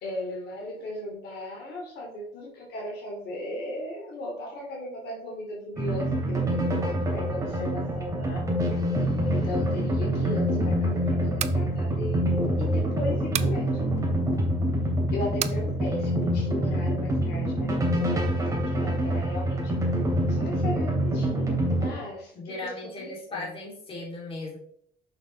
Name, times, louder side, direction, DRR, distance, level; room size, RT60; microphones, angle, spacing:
voice 1, 0.0-6.8 7.1-8.4 9.2-13.7 15.1-19.7 20.3-22.7 23.0-23.5, left 1 dB, 75° left, -2 dB, 2.7 m, -36 dB
sound 1, 5.8-21.9, equal, 20° right, 2.7 m, -26 dB
sound 2, 11.2-11.6 13.3-13.6 15.4-15.6, right 9 dB, 40° right, 0.5 m, -30 dB
voice 2, 22.3-24.6, left 2 dB, 35° left, -3 dB, 3.2 m, -37 dB
6.4 x 6.3 x 3.4 m, 0.64 s
cardioid pair, 110°, 17 cm